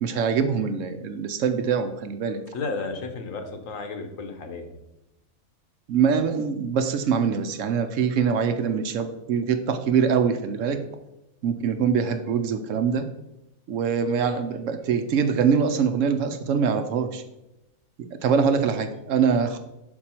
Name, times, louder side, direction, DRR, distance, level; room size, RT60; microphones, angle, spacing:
voice 1, 0.0-2.4 5.9-10.8 11.4-13.0 13.7-17.2 18.0-19.6, right 6 dB, 70° right, 8 dB, 0.9 m, -24 dB
voice 2, 2.5-4.8, left 4 dB, 70° left, 6 dB, 1.2 m, -33 dB
6.1 x 4.7 x 4.3 m, 0.91 s
omnidirectional pair, 1.4 m